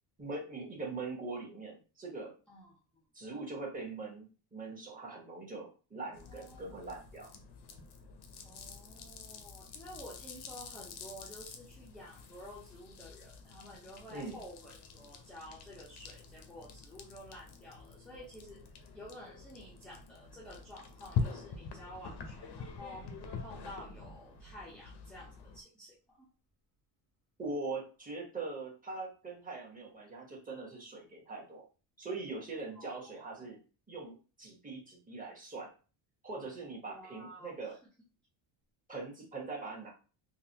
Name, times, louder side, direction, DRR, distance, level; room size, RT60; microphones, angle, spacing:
voice 1, 0.2-2.3 3.1-7.3 14.1-14.4 27.4-31.6 32.0-33.6 33.9-35.7 36.2-37.8 38.9-39.9, right 3 dB, 15° right, -3 dB, 1.3 m, -42 dB
voice 2, 2.5-3.0 6.2-6.6 6.9-7.1 8.4-18.7 18.9-23.1 23.4-26.3 32.8-33.5 36.9-37.8, equal, ahead, -5 dB, 0.7 m, -51 dB
sound 1, 6.1-25.6, left 5 dB, 55° left, 0.8 m, -45 dB
3.9 x 2.4 x 2.8 m, 0.36 s
cardioid pair, 135°, 49 cm